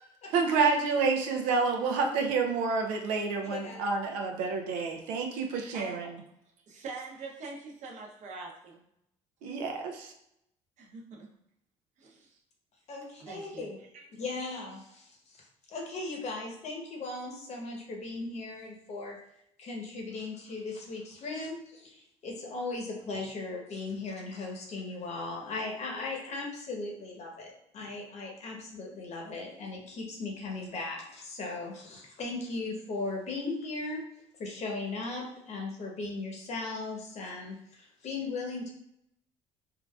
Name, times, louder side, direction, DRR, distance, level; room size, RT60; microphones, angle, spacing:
voice 1, 0.3-6.1 9.4-10.1, right 4 dB, 85° right, 3 dB, 0.5 m, -28 dB
voice 2, 3.5-3.8 12.9-13.8 14.2-19.2 19.6-34.0 34.4-38.7, left 3 dB, 55° left, 0 dB, 0.9 m, -38 dB
voice 3, 5.7-6.1 6.7-8.8 10.8-11.3 12.0-12.4 13.2-13.7 13.9-14.0, right 3 dB, 60° right, -1 dB, 0.8 m, -44 dB
3.7 x 2.4 x 2.3 m, 0.77 s
supercardioid pair, 75°, 14 cm